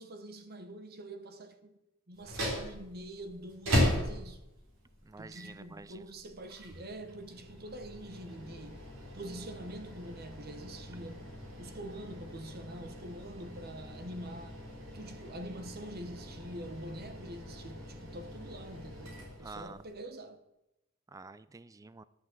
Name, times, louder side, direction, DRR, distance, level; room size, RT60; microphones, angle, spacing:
voice 1, 0.0-1.8 2.1-4.4 5.2-8.9 9.1-11.3 11.6-14.7 14.9-20.4, right 1 dB, 50° right, 0.9 m, -45 dB
sound 1, 2.1-19.9, equal, 85° right, 3.7 m, -39 dB
voice 2, 5.0-6.0 19.4-19.8 21.1-22.0, right 3 dB, 15° right, 0.4 m, -48 dB
11.0 x 6.1 x 7.5 m
head